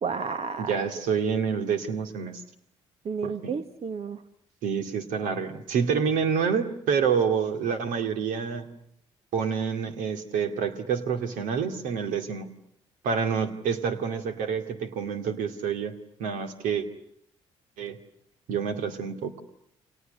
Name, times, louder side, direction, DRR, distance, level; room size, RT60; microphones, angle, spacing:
voice 1, 0.0-0.9 3.0-4.2, right 5 dB, 45° right, 10 dB, 1.3 m, -31 dB
voice 2, 0.6-2.4 3.2-3.5 4.6-8.7 9.3-12.5 13.0-15.9 16.2-16.9 17.8-18.0 18.5-19.3, right 6 dB, 60° right, 7 dB, 2.4 m, -28 dB
29.5 x 26.5 x 6.6 m, 0.72 s
figure-of-eight pair, 45°, 15 cm